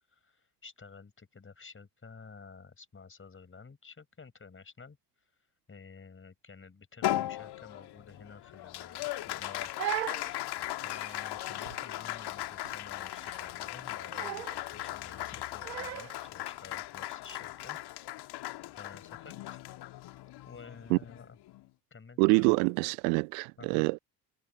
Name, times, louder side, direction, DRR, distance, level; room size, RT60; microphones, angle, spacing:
voice 1, 0.1-5.0 5.7-9.7 10.3-17.8 18.8-19.6 20.5-21.4 21.9-22.6 23.6-23.8, left 5 dB, 25° left, 5.2 m, -51 dB
Applause, 7.0-21.7, left 15 dB, 50° left, 1.9 m, -38 dB
Crying sobbing, 9.4-16.3, right 13 dB, 80° right, 0.9 m, -40 dB
voice 2, 22.2-24.0, right 40 dB or more, 55° right, 0.5 m, -26 dB
figure-of-eight pair, 50°, 50 cm